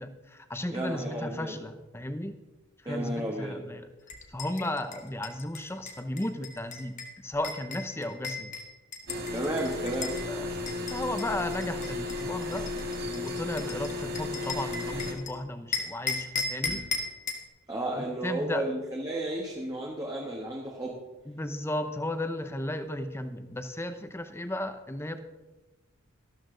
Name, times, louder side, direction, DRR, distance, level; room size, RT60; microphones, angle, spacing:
voice 1, 0.0-2.3 2.8-3.9 4.3-7.0 7.2-8.5 10.3-10.5 10.8-12.7 13.1-16.8 17.9-18.6 21.2-25.2, left 1 dB, 10° left, 9 dB, 0.8 m, -35 dB
voice 2, 0.7-1.6 2.8-3.6 9.3-10.2 17.7-21.0, right 1 dB, 20° right, -1 dB, 1.3 m, -33 dB
sound 1, 4.1-10.2 10.7-15.3 15.7-17.5, left 4 dB, 35° left, 1.6 m, -37 dB
sound 2, 9.1-15.1, left 2 dB, 50° right, 1.9 m, -34 dB
13.5 x 13.0 x 3.9 m, 1.1 s
head